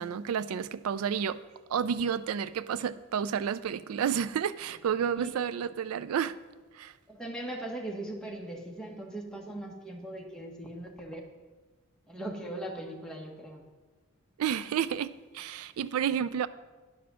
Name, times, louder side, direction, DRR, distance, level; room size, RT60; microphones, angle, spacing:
voice 1, 0.0-1.4 1.7-6.4 6.7-6.9 14.4-16.5, right 8 dB, 85° right, 0.4 m, -30 dB
voice 2, 7.1-11.2 12.1-13.6, right 1 dB, 5° left, 1.3 m, -39 dB
10.5 x 6.0 x 6.1 m
head